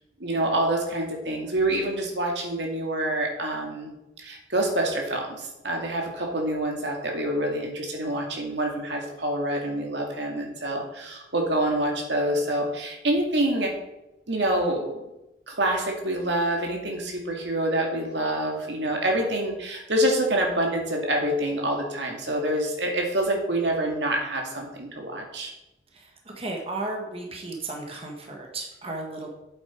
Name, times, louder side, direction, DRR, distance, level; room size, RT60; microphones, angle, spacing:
voice 1, 0.2-13.7 14.3-15.0 15.5-25.5, right 1 dB, 80° right, 1 dB, 2.2 m, -26 dB
voice 2, 25.9-29.3, right 2 dB, 35° right, 0 dB, 1.5 m, -34 dB
8.5 x 8.2 x 4.5 m, 0.93 s
head